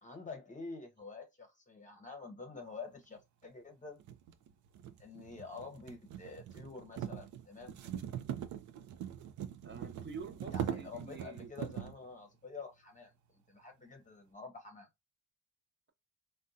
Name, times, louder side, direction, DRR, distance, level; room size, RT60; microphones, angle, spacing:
voice 1, 0.0-4.0 5.0-7.7 10.5-13.1 13.5-14.9, left 4 dB, 25° left, 0.8 m, -48 dB
sound 1, 3.2-3.3 4.0-12.0, right 9 dB, 75° right, 0.6 m, -42 dB
voice 2, 9.6-11.5, right 4 dB, 35° right, 0.9 m, -47 dB
3.5 x 2.2 x 2.6 m
cardioid pair, 90°, 30 cm